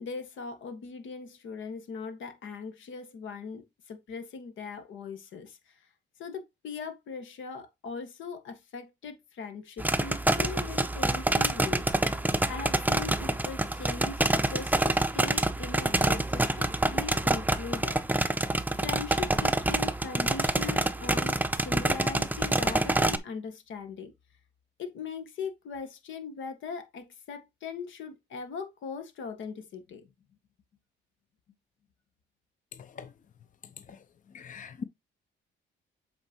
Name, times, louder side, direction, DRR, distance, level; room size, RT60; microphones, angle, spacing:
voice 1, 0.0-5.9 6.2-12.2 12.5-24.1 24.8-30.1, left 5 dB, 75° left, 1.8 m, -40 dB
sound 1, 9.8-23.2, right 2 dB, 10° right, 0.7 m, -27 dB
voice 2, 34.3-34.8, left 6 dB, 40° left, 0.7 m, -40 dB
7.8 x 4.4 x 3.0 m
cardioid pair, 90°, 20 cm